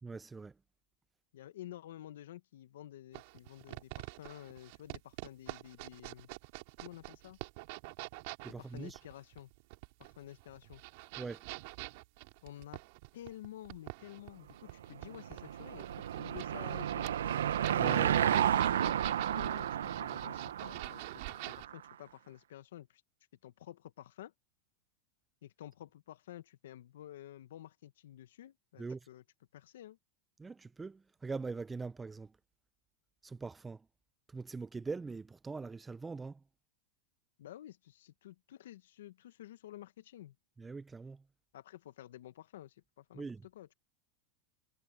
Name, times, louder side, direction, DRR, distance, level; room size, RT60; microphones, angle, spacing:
voice 1, 0.0-0.5 8.4-9.0 11.2-11.4 17.8-18.4 28.8-29.1 30.4-32.3 33.2-33.9 34.3-36.4 40.6-41.2 43.1-43.4, right 4 dB, 15° right, 1.1 m, -42 dB
voice 2, 1.3-6.3 6.8-7.4 8.6-9.5 10.0-10.8 12.4-12.8 13.1-17.1 18.1-23.0 23.4-24.3 25.4-29.2 29.5-30.0 37.4-40.3 41.5-43.3 43.5-43.7, left 13 dB, 75° left, 1.5 m, -51 dB
sound 1, 3.1-21.7, right 27 dB, 60° right, 4.3 m, -46 dB
Car passing by / Engine, 14.9-21.7, right 10 dB, 85° right, 1.1 m, -32 dB
hypercardioid pair, 110°, 0 cm